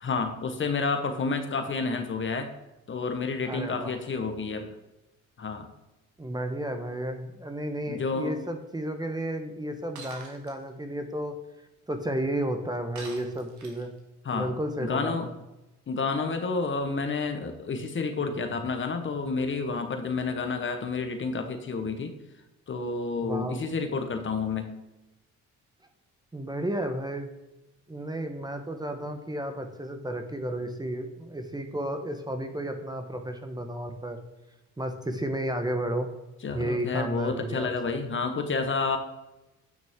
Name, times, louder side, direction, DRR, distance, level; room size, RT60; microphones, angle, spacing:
voice 1, 0.0-2.5 2.9-4.7 5.4-5.7 7.9-8.3 14.2-14.5 14.8-15.3 15.9-22.1 22.7-24.7 36.4-39.0, left 4 dB, 40° left, 6 dB, 1.1 m, -30 dB
voice 2, 3.5-3.9 6.2-11.3 11.9-13.9 14.3-15.3 23.2-23.7 26.3-27.3 27.9-34.2 34.8-36.1 36.5-38.0, right 1 dB, 15° right, 6 dB, 0.9 m, -32 dB
Shatter, 9.9-10.5 12.9-14.0, right 4 dB, 75° right, 2.0 m, -44 dB
9.3 x 5.9 x 3.6 m, 0.98 s
cardioid pair, 90°, 30 cm